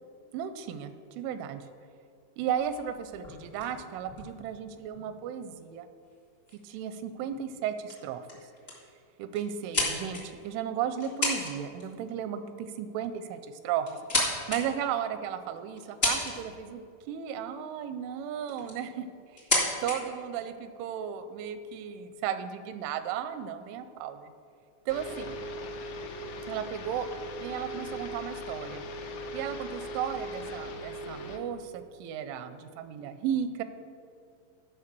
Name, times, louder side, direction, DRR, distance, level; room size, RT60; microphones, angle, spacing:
voice 1, 0.3-1.6 2.4-5.9 6.6-8.3 9.2-16.8 17.1-19.1 19.8-24.3 24.9-25.4 26.5-27.1 27.4-28.8 29.3-33.6, right 9 dB, 85° right, 11 dB, 3.0 m, -35 dB
sound 1, 2.6-5.2 6.1-6.2 6.5-6.7 7.3-7.6 7.9-8.0 8.3-8.8 9.3-10.5 11.0-11.5 11.8-12.1 13.1-13.2 13.7-14.6 15.2-15.3 15.8-16.6 17.9-18.0 18.5-18.8 19.3-19.9, left 2 dB, 60° left, 0.6 m, -32 dB
sound 2, 24.9-31.4, left 1 dB, 75° left, 3.1 m, -39 dB
12.5 x 5.4 x 6.8 m, 2.4 s
omnidirectional pair, 5.5 m